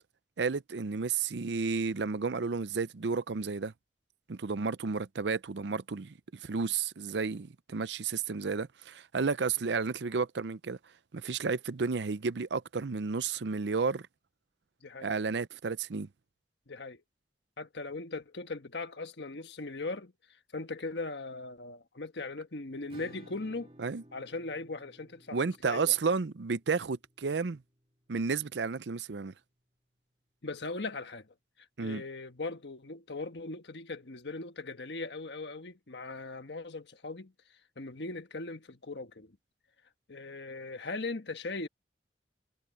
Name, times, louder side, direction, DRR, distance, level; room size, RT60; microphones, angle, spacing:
voice 1, 0.4-3.7 4.3-6.1 6.4-10.8 11.1-14.1 15.0-16.1 23.8-24.0 25.3-27.6 28.1-29.3 31.8-32.0, right 5 dB, 80° right, 0.6 m, -32 dB
voice 2, 16.7-17.0 17.6-23.7 24.1-25.9 30.4-39.4 40.1-41.7, left 3 dB, 75° left, 1.4 m, -39 dB
Acoustic guitar / Strum, 22.9-28.3, right 1 dB, 30° right, 2.3 m, -58 dB
head